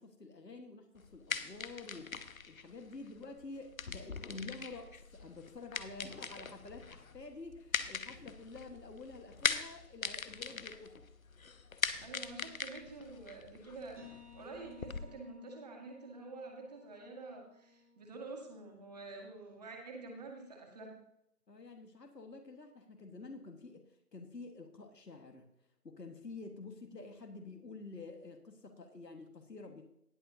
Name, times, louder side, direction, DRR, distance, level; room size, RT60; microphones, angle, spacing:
voice 1, 0.0-2.1 2.4-11.1 21.5-25.5 25.8-29.8, left 3 dB, 90° left, 4 dB, 1.6 m, -49 dB
sound 1, 1.0-15.0, left 5 dB, 60° left, 0.9 m, -41 dB
voice 2, 12.0-14.0 14.3-20.9, right 3 dB, 25° right, 0 dB, 1.9 m, -48 dB
sound 2, 14.0-19.5, left 6 dB, 70° right, 3.6 m, -60 dB
19.0 x 6.8 x 2.7 m, 0.79 s
figure-of-eight pair, 165°, 48 cm